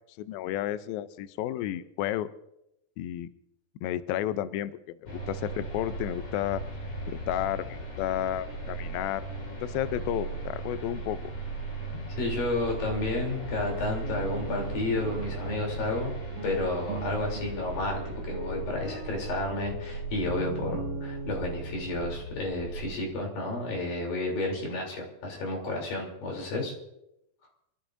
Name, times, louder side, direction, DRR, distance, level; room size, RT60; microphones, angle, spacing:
voice 1, 0.2-2.3 3.0-3.3 3.8-4.7 5.0-6.6 7.1-9.3 9.6-11.3, left 12 dB, 85° left, 12 dB, 2.1 m, -32 dB
sound 1, 5.1-23.0, right 3 dB, 35° left, 3.9 m, -37 dB
voice 2, 12.2-16.2 16.4-26.7, left 2 dB, 55° left, 0 dB, 4.9 m, -31 dB
sound 2, 13.0-22.4, right 2 dB, 65° right, 2.2 m, -40 dB
27.0 x 14.0 x 2.6 m, 0.84 s
omnidirectional pair, 5.0 m